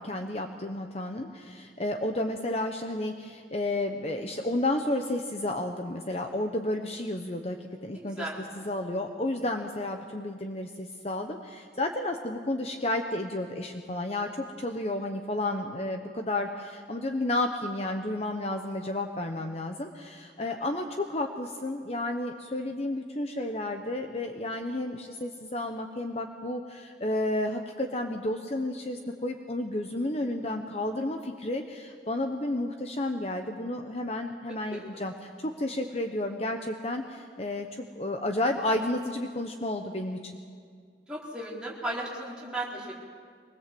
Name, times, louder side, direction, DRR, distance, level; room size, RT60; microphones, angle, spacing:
voice 1, 0.0-8.3 8.6-40.3, left 1 dB, 35° left, 5 dB, 1.0 m, -32 dB
voice 2, 7.9-8.4 20.4-20.7 34.7-34.8 41.1-43.1, right 1 dB, 5° right, -5 dB, 4.1 m, -36 dB
23.5 x 20.0 x 7.8 m, 2.1 s
head